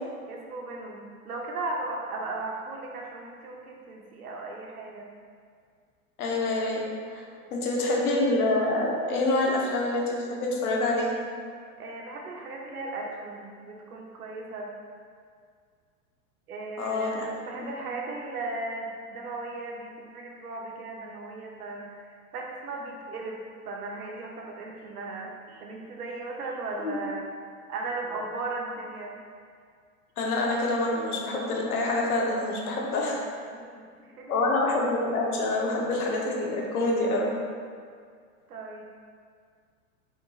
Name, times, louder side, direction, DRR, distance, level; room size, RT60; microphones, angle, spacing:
voice 1, 0.3-5.1 7.4-7.9 11.8-14.7 16.5-23.4 23.7-27.3 27.7-29.1 33.5-34.3 38.5-38.8, right 3 dB, 90° right, -1 dB, 0.9 m, -37 dB
voice 2, 6.2-6.8 7.1-7.2 7.5-11.1 16.8-17.3 17.6-17.7 26.8-27.0 30.2-33.2 34.3-37.3, left 2 dB, 85° left, -1 dB, 1.0 m, -26 dB
4.4 x 4.4 x 2.4 m, 2.1 s
hypercardioid pair, 130°, 43 cm